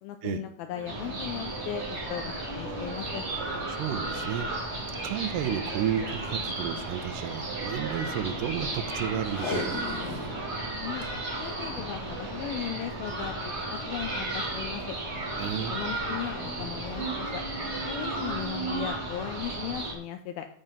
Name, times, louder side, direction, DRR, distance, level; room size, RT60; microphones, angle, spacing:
voice 1, 0.0-3.3 10.8-11.1 11.4-13.5 13.9-14.8 15.6-17.4 17.9-20.5, left 11 dB, 85° left, 7 dB, 2.1 m, -37 dB
sound 1, 0.7-12.9, right 5 dB, 50° right, 4.2 m, -44 dB
sound 2, 0.8-19.9, right 2 dB, 25° right, 1.4 m, -34 dB
voice 2, 3.7-4.5 5.0-9.9 15.4-15.8, right 9 dB, 80° right, 12 dB, 2.7 m, -32 dB
Packing tape duct tape, 9.2-10.4 10.7-10.8 11.0-11.1 11.7-12.0 13.0-13.2 13.8-13.9, left 4 dB, 60° left, 1.9 m, -35 dB
13.5 x 4.6 x 5.2 m, 0.62 s
omnidirectional pair, 4.8 m